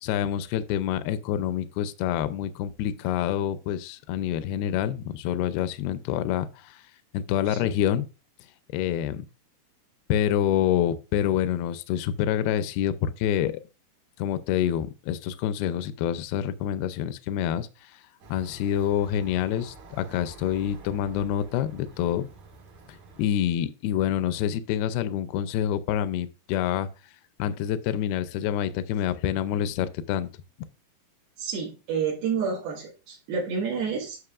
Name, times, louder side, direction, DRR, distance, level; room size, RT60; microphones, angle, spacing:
voice 1, 0.0-6.8 7.1-8.1 8.7-9.3 10.1-13.5 14.2-17.9 18.3-22.3 23.2-26.9 27.4-30.3, left 10 dB, 80° left, 2.4 m, -27 dB
sound 1, 18.2-23.3, right 4 dB, 55° right, 2.7 m, -48 dB
voice 2, 31.4-34.2, right 6 dB, 75° right, 3.6 m, -29 dB
9.8 x 6.4 x 2.4 m
omnidirectional pair, 4.7 m